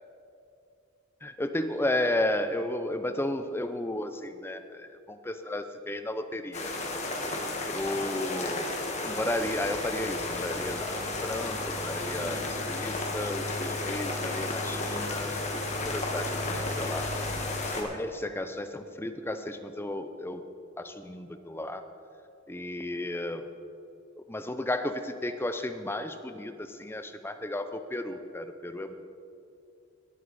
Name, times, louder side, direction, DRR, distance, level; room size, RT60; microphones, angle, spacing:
voice 1, 1.2-6.8 7.7-8.7 9.0-17.1 17.8-20.4 20.8-21.8 22.5-23.5 24.3-29.0, left 1 dB, 10° left, 9 dB, 0.5 m, -33 dB
sound 1, 6.5-17.8, left 2 dB, 35° left, 1.5 m, -33 dB
sound 2, 9.1-17.7, left 2 dB, 55° left, 3.3 m, -40 dB
19.0 x 7.8 x 4.2 m, 2.6 s
head